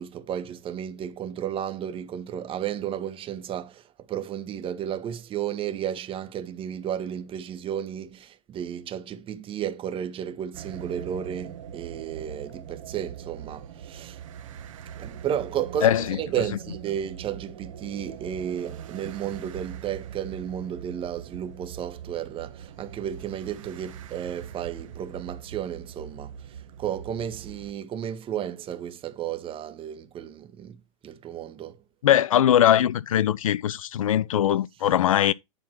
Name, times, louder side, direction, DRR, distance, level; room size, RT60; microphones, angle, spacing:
voice 1, 0.0-14.2 15.0-31.8, right 9 dB, 30° right, 1.4 m, -33 dB
sound 1, 10.5-27.7, right 9 dB, 70° right, 1.3 m, -42 dB
voice 2, 15.8-16.2 32.0-35.3, left 11 dB, 80° left, 0.6 m, -21 dB
10.0 x 3.9 x 6.2 m
hypercardioid pair, 105°, 17 cm